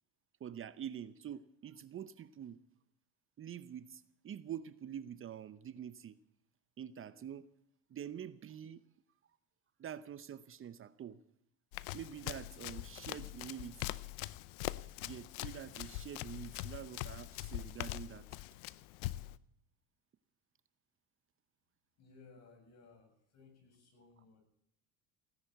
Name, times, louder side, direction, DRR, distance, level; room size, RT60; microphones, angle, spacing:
voice 1, 0.4-2.6 3.4-6.2 6.8-7.5 7.9-8.8 9.8-11.2 11.9-14.0 15.0-18.3, right 9 dB, 40° right, 14 dB, 0.8 m, -46 dB
Run, 11.7-19.4, left 17 dB, 85° left, 0.7 m, -43 dB
voice 2, 22.0-24.4, left 4 dB, 50° left, 3 dB, 7.3 m, -60 dB
17.0 x 10.5 x 8.0 m, 0.69 s
supercardioid pair, 100°, 34 cm